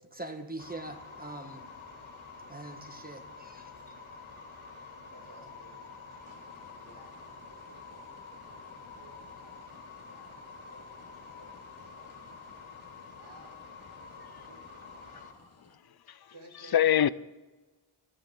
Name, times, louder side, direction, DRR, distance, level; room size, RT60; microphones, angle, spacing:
voice 1, 0.0-1.7 2.5-3.9, right 2 dB, 20° right, 1.4 m, -43 dB
sound 1, 0.6-15.3, left 4 dB, 75° left, 2.7 m, -48 dB
voice 2, 4.7-6.6 6.8-12.2 13.2-13.6 14.0-14.6 15.1-16.0 16.3-17.1, right 2 dB, 75° right, 4.3 m, -58 dB
sound 2, 6.2-15.8, left 3 dB, 30° left, 1.2 m, -62 dB
voice 3, 15.6-16.3 16.7-17.1, left 10 dB, 50° left, 0.5 m, -27 dB
25.0 x 13.0 x 3.8 m
wide cardioid pair, 120°, 49 cm